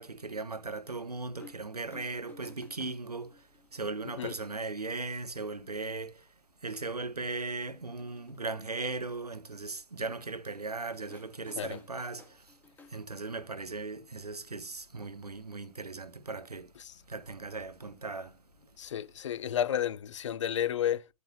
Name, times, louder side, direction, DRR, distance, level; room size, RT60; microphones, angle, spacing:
voice 1, 0.0-6.3 6.6-12.5 12.9-16.7 17.1-18.7, right 3 dB, 80° right, 1.2 m, -38 dB
sound 1, 0.9-1.0 1.4-1.7 1.9-4.1 4.9-5.0 6.0-6.1 6.5-6.6 7.8-8.4 11.1-13.5 14.7-14.8, left 4 dB, 10° left, 1.6 m, -57 dB
voice 2, 18.8-21.1, left 10 dB, 50° left, 0.5 m, -32 dB
10.5 x 8.4 x 2.8 m
figure-of-eight pair, 115°, 20 cm